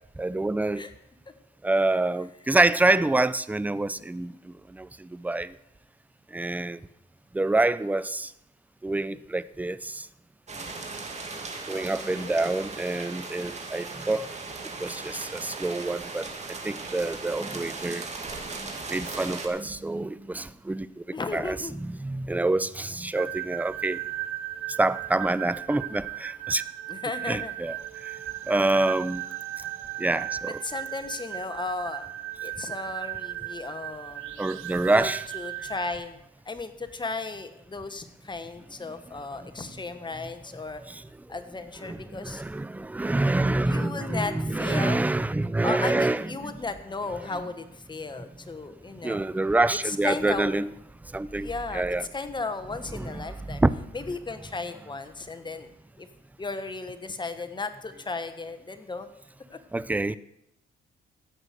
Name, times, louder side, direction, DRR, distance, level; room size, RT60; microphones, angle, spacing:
voice 1, 0.2-0.8 1.6-5.5 6.3-6.8 7.3-8.3 8.8-10.0 11.7-14.3 14.8-16.3 16.6-18.1 18.6-21.0 21.3-24.0 24.8-26.6 27.3-27.7 28.5-29.2 30.0-30.6 34.4-35.2 40.8-41.0 41.9-46.5 49.0-50.7 51.1-52.0 52.9-53.7 59.7-60.2, right 2 dB, 10° right, 0.5 m, -27 dB
sound 1, 10.5-19.5, right 3 dB, 35° right, 2.2 m, -38 dB
voice 2, 12.0-12.5 21.1-21.7 26.9-27.5 30.6-32.1 32.4-34.4 34.9-36.2 36.4-40.8 41.3-42.4 43.6-45.0 45.6-49.2 49.8-50.5 51.4-53.6 53.9-55.7 56.0-56.1 56.4-59.1 59.5-59.6 60.0-60.1, left 3 dB, 25° left, 1.4 m, -35 dB
sound 2, 23.1-35.9, right 14 dB, 85° right, 0.7 m, -36 dB
16.0 x 6.3 x 6.7 m
cardioid pair, 90°, 20 cm